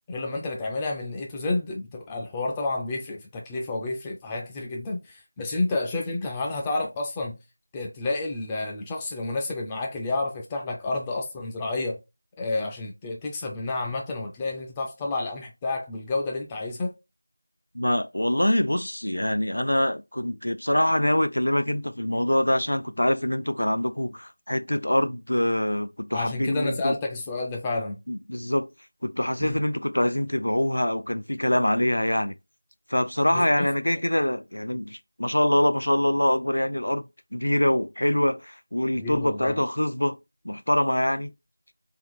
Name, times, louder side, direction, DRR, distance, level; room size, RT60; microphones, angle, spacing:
voice 1, 0.1-7.4 7.7-12.0 12.4-16.9 26.1-28.0 29.4-29.6 33.3-33.7 38.9-39.6, left 2 dB, 10° left, 0.3 m, -30 dB
voice 2, 17.7-26.9 28.1-28.7 29.0-32.4 32.9-37.0 37.3-40.2 40.4-41.3, left 1 dB, 75° left, 0.4 m, -24 dB
3.5 x 2.4 x 3.5 m
figure-of-eight pair, 175°, 0 cm